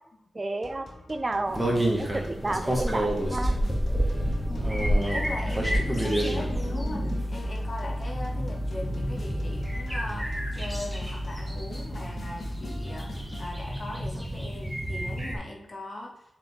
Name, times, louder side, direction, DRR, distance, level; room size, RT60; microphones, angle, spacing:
voice 1, 0.3-1.7 2.0-3.6, right 2 dB, 35° right, 9 dB, 0.8 m, -31 dB
sound 1, 0.6-13.6, left 2 dB, 60° left, 1.7 m, -47 dB
sound 2, 1.5-15.4, right 1 dB, 10° right, 2.1 m, -30 dB
Piano, 4.1-14.4, equal, 70° right, 2.4 m, -34 dB
voice 2, 4.5-16.4, left 2 dB, 45° left, -1 dB, 2.3 m, -40 dB
7.2 x 5.2 x 3.7 m, 0.85 s
cardioid pair, 60°, 0 cm